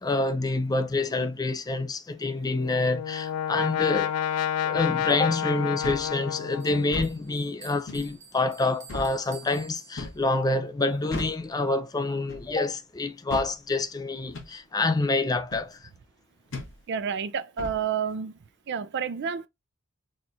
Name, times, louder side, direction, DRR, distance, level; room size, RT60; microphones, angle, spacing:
voice 1, 0.0-4.1 4.6-15.9, left 2 dB, 15° left, 0.4 m, -27 dB
Brass instrument, 2.4-7.2, left 9 dB, 90° left, 0.3 m, -30 dB
sound 1, 5.8-6.1 6.8-7.2 7.9-8.1 8.9-9.1 10.0-10.2 11.1-11.4 12.3-12.5 13.3-13.5 14.3-14.5 15.5-15.7 16.5-16.7 17.6-17.8, left 2 dB, 60° left, 1.6 m, -36 dB
Bell, 6.0-10.5, right 5 dB, 30° right, 0.9 m, -52 dB
voice 2, 16.9-18.4 18.7-19.5, right 7 dB, 50° right, 0.4 m, -29 dB
4.2 x 2.4 x 2.7 m
head